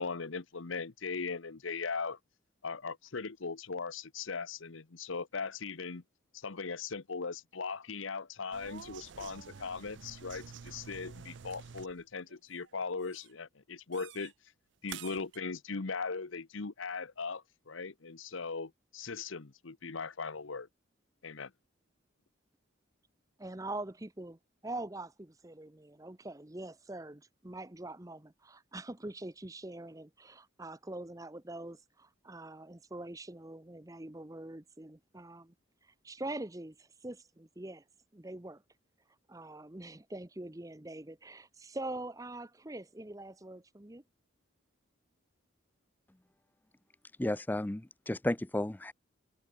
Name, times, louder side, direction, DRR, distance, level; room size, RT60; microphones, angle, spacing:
voice 1, 0.0-2.2 2.6-6.0 6.3-14.3 14.8-20.7 21.2-21.5, left 4 dB, 75° left, 1.0 m, -39 dB
sound 1, 8.5-12.0 12.3-12.7 13.0-13.3 13.9-14.3 14.9-15.4, right 7 dB, 60° right, 0.5 m, -49 dB
voice 2, 23.4-35.5 35.8-37.8 38.1-38.6 39.3-44.0, right 2 dB, 15° right, 0.8 m, -44 dB
voice 3, 47.2-48.9, left 1 dB, 10° left, 0.4 m, -33 dB
head